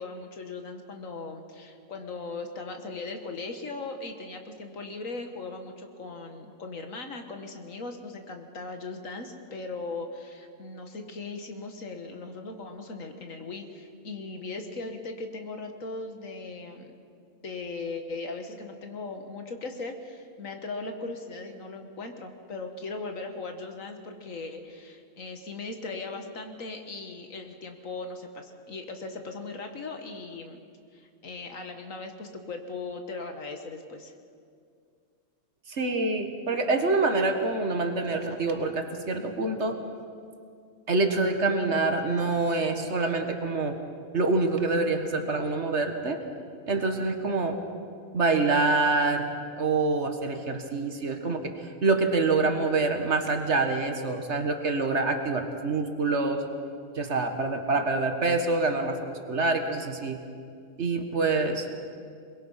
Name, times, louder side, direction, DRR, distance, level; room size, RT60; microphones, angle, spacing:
voice 1, 0.0-16.9 17.4-30.6 30.9-34.1, left 3 dB, 65° left, 5 dB, 1.9 m, -38 dB
voice 2, 35.7-39.8 40.9-43.8 44.1-46.2 46.7-47.6 48.1-49.3 49.6-51.5 51.8-56.4 57.0-60.2 60.8-61.7, right 3 dB, 55° right, 6 dB, 1.7 m, -26 dB
22.0 x 22.0 x 5.7 m, 2.3 s
omnidirectional pair, 1.5 m